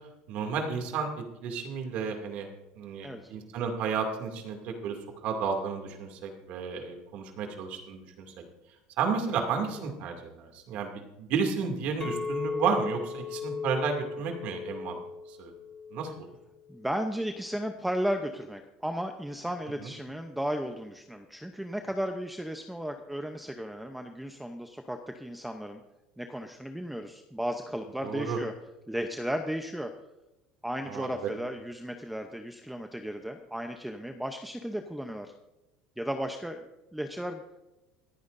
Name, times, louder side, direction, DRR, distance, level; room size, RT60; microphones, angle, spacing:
voice 1, 0.3-2.5 2.8-8.3 9.0-15.0 15.3-15.5 15.9-16.3 19.8-19.9 28.0-28.4 30.9-31.1, right 5 dB, 60° right, 3 dB, 2.5 m, -32 dB
Chink clink, 12.0-16.4 16.7-17.1, left 4 dB, 20° left, 1.2 m, -36 dB
voice 2, 16.7-25.8 26.2-28.5 28.9-29.9 30.6-35.3 36.0-37.4, equal, 5° right, 5 dB, 0.7 m, -35 dB
26.0 x 9.4 x 2.6 m, 0.98 s
cardioid pair, 140°, 3 cm